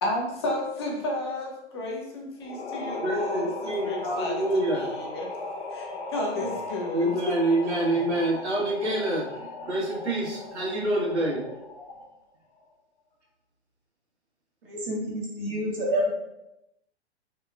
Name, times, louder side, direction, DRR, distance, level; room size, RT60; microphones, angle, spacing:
voice 1, 0.0-5.3 5.7-7.3 7.6-7.9, left 2 dB, 25° left, 0 dB, 0.3 m, -32 dB
sound 1, 2.4-12.2, left 2 dB, 65° left, 0.7 m, -37 dB
voice 2, 3.0-4.9 6.9-11.4, right 1 dB, 70° right, -4 dB, 1.1 m, -27 dB
voice 3, 14.7-16.1, equal, 55° right, -4 dB, 0.9 m, -28 dB
2.8 x 2.2 x 2.2 m, 0.88 s
figure-of-eight pair, 115°, 35 cm